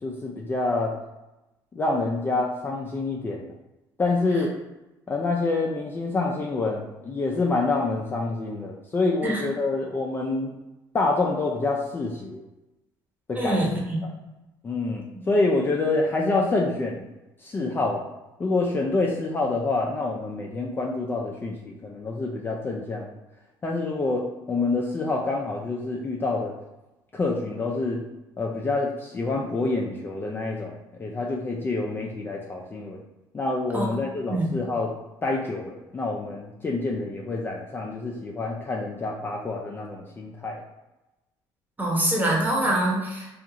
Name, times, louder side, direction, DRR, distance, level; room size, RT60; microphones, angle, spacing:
voice 1, 0.0-1.0 1.8-3.5 4.0-4.5 5.1-10.5 10.9-12.4 13.3-13.7 14.6-17.1 17.4-18.0 18.4-23.1 23.6-26.5 27.1-28.0 28.4-33.0 33.3-34.9 35.2-40.6, left 3 dB, 25° left, -1 dB, 0.3 m, -27 dB
voice 2, 13.3-14.0 33.7-33.9 34.3-34.5 41.8-43.3, right 1 dB, 20° right, -3 dB, 0.9 m, -24 dB
2.5 x 2.4 x 2.8 m, 1.0 s
cardioid pair, 100°, 9 cm